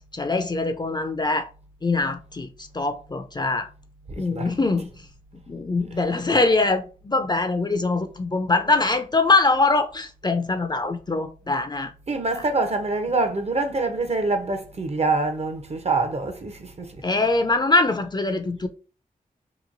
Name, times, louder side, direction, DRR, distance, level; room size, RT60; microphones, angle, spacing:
voice 1, 0.1-1.5 1.8-2.5 2.7-3.7 4.2-4.9 5.5-11.9 17.0-18.7, left 3 dB, 30° left, 0.4 m, -23 dB
voice 2, 4.1-4.5 12.1-17.0, right 3 dB, 45° right, 0.6 m, -25 dB
2.9 x 2.3 x 2.5 m
cardioid pair, 45°, 16 cm